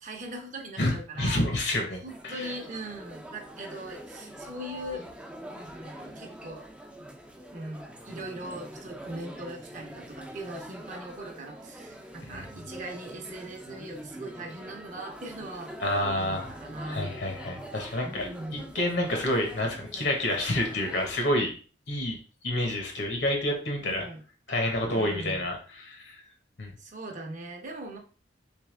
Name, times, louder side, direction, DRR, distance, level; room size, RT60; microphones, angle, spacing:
voice 1, 0.0-1.4 2.0-5.1 5.5-6.7 7.5-15.7 16.2-17.1 18.0-18.7 23.8-24.2 24.8-25.5 26.8-28.0, right 1 dB, 40° right, 2 dB, 0.7 m, -40 dB
voice 2, 0.8-2.5 12.3-12.5 15.8-16.5 16.8-21.5 21.9-22.2 22.4-24.0 24.5-26.2 26.6-26.7, left 1 dB, 65° left, 2 dB, 1.2 m, -29 dB
sound 1, 2.1-21.2, right 1 dB, 5° right, 0.4 m, -44 dB
3.4 x 3.4 x 3.3 m, 0.38 s
head